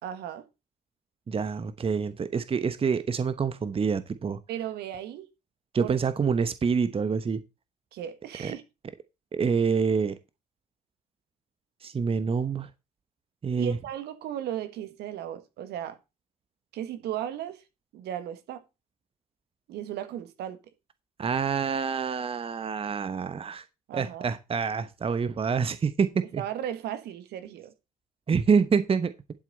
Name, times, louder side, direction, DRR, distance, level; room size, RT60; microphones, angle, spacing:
voice 1, 0.0-0.5 4.5-5.3 5.8-6.0 7.9-8.6 13.6-16.0 16.7-17.6 17.9-18.6 19.7-20.6 23.9-24.3 26.4-27.7, right 10 dB, 60° right, 1.5 m, -35 dB
voice 2, 1.3-4.4 5.7-7.4 8.4-8.5 9.3-10.1 11.8-12.7 13.4-13.8 21.2-23.6 23.9-26.4 28.3-29.1, right 5 dB, 30° right, 1.0 m, -26 dB
11.5 x 7.6 x 4.1 m
hypercardioid pair, 55°, 19 cm